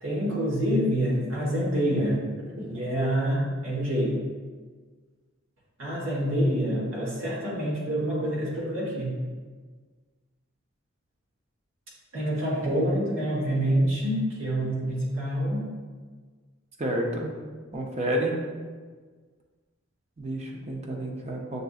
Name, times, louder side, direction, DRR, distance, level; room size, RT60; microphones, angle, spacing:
voice 1, 0.0-2.2 2.6-4.2 5.8-9.1 12.1-15.6, equal, 65° right, -5 dB, 1.3 m, -26 dB
voice 2, 16.8-17.3 17.7-18.4 20.2-21.6, right 1 dB, 30° right, 0 dB, 0.6 m, -29 dB
6.7 x 2.6 x 2.4 m, 1.5 s
head